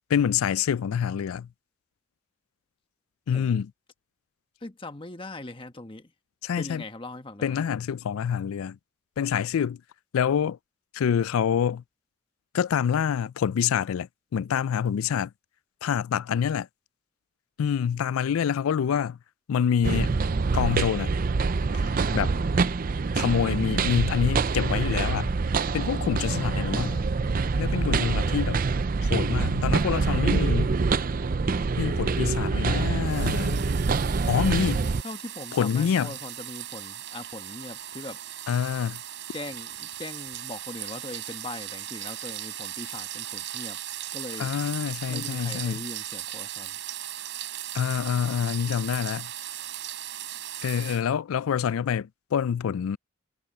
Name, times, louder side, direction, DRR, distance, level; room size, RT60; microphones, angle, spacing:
voice 1, 0.1-1.5 3.3-3.7 6.4-6.8 7.4-8.8 9.2-9.8 10.1-10.6 10.9-11.8 12.5-15.3 15.8-16.7 17.6-19.2 19.5-20.2 20.5-21.1 21.7-22.3 23.1-25.3 25.7-27.0 27.6-28.6 29.0-30.7 31.8-33.7 34.3-34.9 35.5-36.1 38.5-39.0 44.4-45.8 47.7-49.3 50.6-53.0, left 8 dB, 85° left, 0.4 m, -26 dB
voice 2, 4.6-6.1 6.6-7.6 26.5-27.1 35.0-38.2 39.3-43.8 44.1-44.5 45.1-46.8, left 2 dB, 25° left, 1.2 m, -40 dB
sound 1, 19.8-35.0, right 4 dB, 40° right, 0.5 m, -25 dB
sound 2, 33.0-51.0, right 12 dB, 60° right, 4.3 m, -38 dB
head